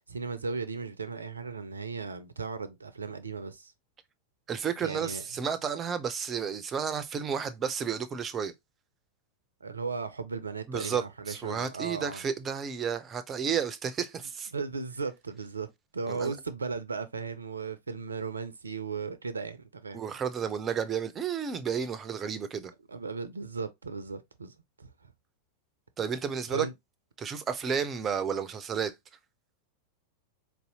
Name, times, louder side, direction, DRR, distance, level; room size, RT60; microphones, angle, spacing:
voice 1, 0.1-3.7 4.8-5.2 9.6-12.2 14.5-15.7 15.9-20.0 22.9-25.1 26.5-26.7, right 4 dB, 75° right, 0.5 m, -36 dB
voice 2, 4.5-8.5 10.7-14.5 16.1-16.3 19.9-22.7 26.0-26.7 27.2-28.9, right 7 dB, 25° right, 0.5 m, -32 dB
4.2 x 2.7 x 2.7 m
figure-of-eight pair, 90°, 0 cm